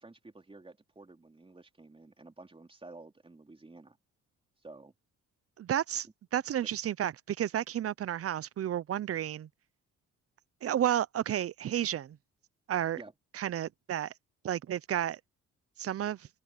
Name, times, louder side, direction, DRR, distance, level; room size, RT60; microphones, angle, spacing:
voice 1, 0.0-4.0 4.6-4.9 13.0-13.1, right 2 dB, 20° right, 3.8 m, -51 dB
voice 2, 5.6-6.1 6.3-9.5 10.6-12.2 12.7-13.0 13.3-14.1 14.4-15.2 15.8-16.3, right 11 dB, 50° right, 0.7 m, -31 dB
open air
cardioid pair, 90°, 30 cm